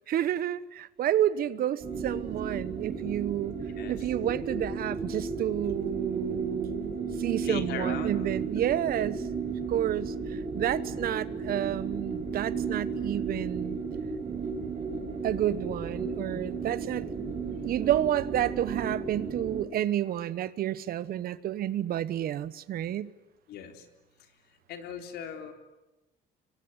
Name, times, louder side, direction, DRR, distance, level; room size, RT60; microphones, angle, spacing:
voice 1, 0.1-3.6 3.9-9.2 9.7-13.8 15.2-17.0 17.6-23.1, right 11 dB, 60° right, 17 dB, 1.1 m, -30 dB
sound 1, 1.8-19.6, right 5 dB, 40° right, 6.3 m, -34 dB
voice 2, 7.4-8.1 23.5-23.9 24.7-25.5, left 8 dB, 75° left, 6 dB, 3.7 m, -38 dB
25.0 x 23.5 x 9.8 m, 1.0 s
cardioid pair, 110°, 17 cm